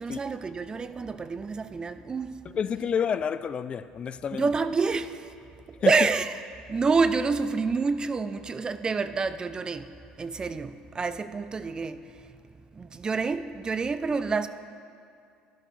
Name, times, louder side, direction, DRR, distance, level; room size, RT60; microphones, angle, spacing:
voice 1, 0.0-2.4 4.3-5.2 5.9-6.3 6.7-9.9 10.2-12.0 12.8-14.5, right 4 dB, 25° right, 0.5 m, -27 dB
voice 2, 2.5-4.5 5.8-5.9, left 7 dB, 40° left, 0.3 m, -29 dB
13.0 x 11.5 x 3.2 m
supercardioid pair, 95°, 3 cm